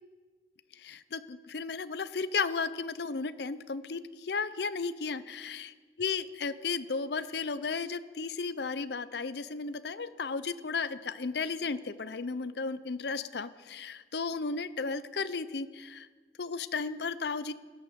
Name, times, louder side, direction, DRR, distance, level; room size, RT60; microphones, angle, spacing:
voice 1, 0.8-5.7 6.0-16.1 16.4-17.5, left 4 dB, 70° left, 13 dB, 0.6 m, -34 dB
16.0 x 12.0 x 6.8 m, 1.4 s
head